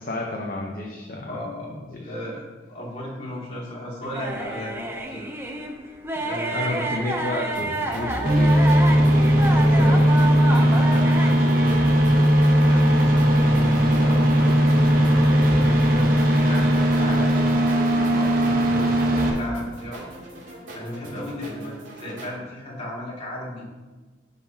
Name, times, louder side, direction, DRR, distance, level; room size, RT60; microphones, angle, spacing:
voice 1, 0.0-1.4 1.9-2.0 6.1-8.6 8.9-10.1, left 2 dB, 50° left, -1 dB, 0.9 m, -31 dB
voice 2, 1.3-2.4 2.7-5.3 6.2-6.8 8.2-8.5 10.5-12.2 12.7-20.0 20.7-23.7, left 1 dB, 35° left, -6 dB, 2.7 m, -35 dB
sound 1, 4.0-11.7, right 2 dB, 15° right, 0.8 m, -30 dB
sound 2, 7.5-22.3, equal, 85° right, 3.0 m, -39 dB
sound 3, 8.3-19.3, equal, 50° right, 1.3 m, -18 dB
15.5 x 5.7 x 2.9 m, 1.3 s
head